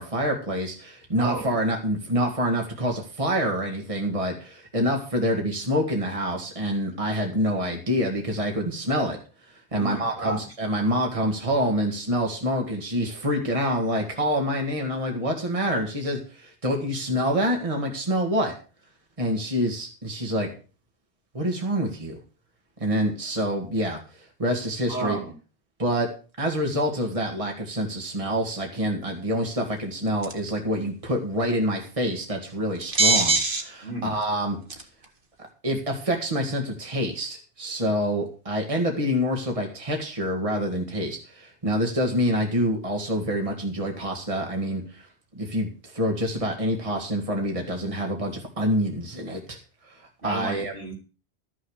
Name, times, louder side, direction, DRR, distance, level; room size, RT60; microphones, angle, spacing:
voice 1, 0.0-9.2 9.5-18.5 19.2-20.5 21.3-22.2 22.8-25.2 25.8-26.1 26.4-34.6 35.6-45.1 45.3-49.6 49.8-50.7, equal, 30° right, 1 dB, 2.1 m, -26 dB
voice 2, 1.2-1.5 9.7-10.4 24.9-25.3 33.8-34.2 50.2-50.9, right 2 dB, 65° right, 0 dB, 3.6 m, -32 dB
sound 1, 30.2-30.5 32.8-33.6 34.2-34.3 34.7-35.1, right 3 dB, 50° right, 1.7 m, -21 dB
13.0 x 6.4 x 6.5 m, 0.36 s
omnidirectional pair, 1.1 m